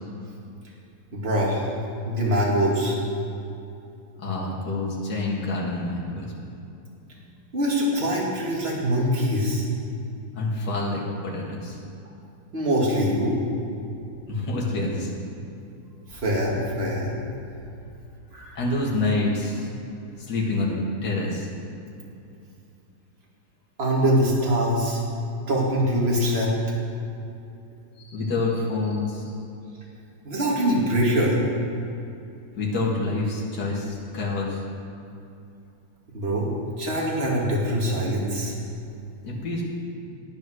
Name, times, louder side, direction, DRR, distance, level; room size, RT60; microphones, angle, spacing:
voice 1, 1.1-1.7 2.1-3.0 7.5-9.7 12.5-13.3 16.1-17.1 18.3-18.5 23.8-25.0 25.5-26.5 30.2-31.4 36.1-36.5 36.8-38.5, equal, 30° right, -3 dB, 2.2 m, -23 dB
voice 2, 4.2-6.3 10.3-11.8 14.3-15.1 18.6-19.7 20.3-21.5 28.0-29.3 32.6-34.6 39.2-39.6, left 2 dB, 55° left, -4 dB, 2.4 m, -27 dB
11.5 x 8.6 x 6.4 m, 2.6 s
omnidirectional pair, 2.3 m